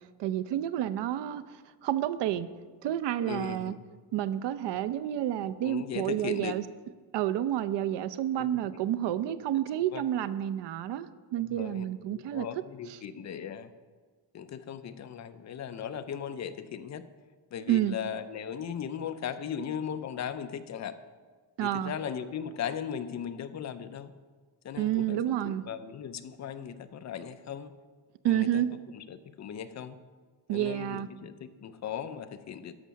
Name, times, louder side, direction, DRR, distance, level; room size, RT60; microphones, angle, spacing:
voice 1, 0.2-2.5 2.8-3.7 4.1-6.6 7.1-12.5 17.7-18.0 21.6-21.9 24.8-25.6 28.2-28.7 30.5-31.1, right 11 dB, 80° right, 14 dB, 0.6 m, -30 dB
voice 2, 3.2-3.8 5.6-6.6 8.4-8.5 9.9-10.0 11.5-11.9 12.1-13.7 14.3-17.1 17.5-21.0 21.6-24.1 24.6-25.2 25.4-27.7 28.2-28.6 28.9-30.0 30.5-32.8, left 8 dB, 40° left, 11 dB, 0.5 m, -37 dB
12.0 x 5.6 x 6.2 m, 1.5 s
cardioid pair, 170°, 41 cm